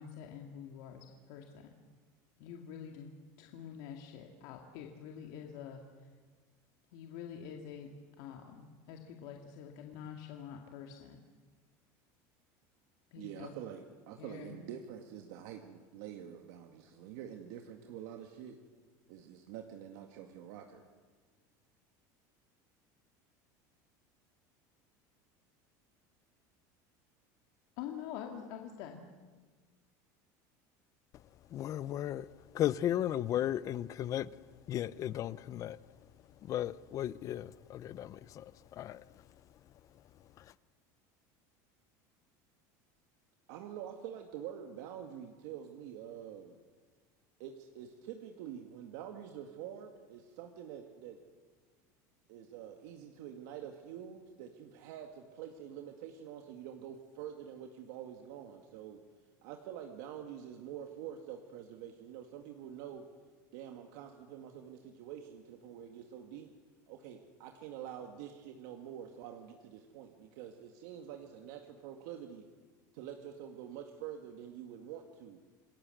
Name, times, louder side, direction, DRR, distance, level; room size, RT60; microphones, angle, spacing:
voice 1, 0.0-1.7 2.4-3.1 3.4-5.8 6.9-7.9 8.2-11.2 13.1-13.5 14.2-14.5 27.8-29.0, left 8 dB, 65° left, 2.3 m, -46 dB
voice 2, 13.2-18.6 19.1-20.8 43.5-46.6 47.4-51.2 52.3-59.0 59.4-63.0 63.5-66.5 66.9-72.5 72.9-75.4, right 9 dB, 75° right, 2.1 m, -46 dB
voice 3, 31.5-32.3 32.5-34.3 34.7-35.8 36.4-39.2 40.4-40.5, left 12 dB, 35° left, 0.7 m, -35 dB
28.5 x 20.5 x 8.0 m
cardioid pair, 155°, 10 cm